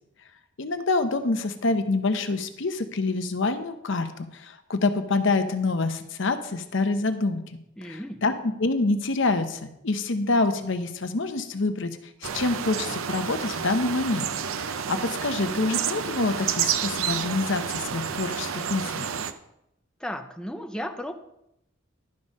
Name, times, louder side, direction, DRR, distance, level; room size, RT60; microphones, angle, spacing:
voice 1, 0.6-7.4 7.8-11.9 12.2-14.3 14.6-19.1, left 3 dB, 65° left, 9 dB, 0.8 m, -26 dB
voice 2, 7.8-8.2 20.0-21.1, equal, 5° left, 5 dB, 0.5 m, -34 dB
sound 1, 12.2-19.3, right 7 dB, 85° right, 0.6 m, -30 dB
11.5 x 5.4 x 5.4 m, 0.82 s
head